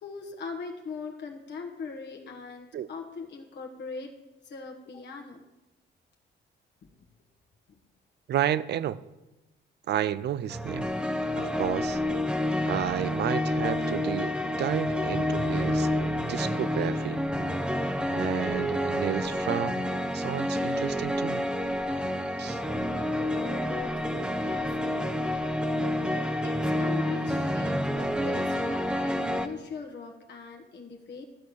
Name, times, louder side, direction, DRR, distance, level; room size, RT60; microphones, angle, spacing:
voice 1, 0.0-4.1 4.4-5.4 22.7-25.1 26.1-31.2, left 4 dB, 60° left, 1.4 m, -41 dB
voice 2, 8.3-9.0 9.9-10.9 11.4-12.0 12.7-14.3 14.6-15.9 16.3-17.2 18.1-19.9 20.1-21.5 22.4-22.6, right 11 dB, 60° right, 0.5 m, -31 dB
sound 1, 10.5-29.5, left 1 dB, 5° right, 0.8 m, -29 dB
13.0 x 4.7 x 7.0 m
cardioid pair, 90°, 20 cm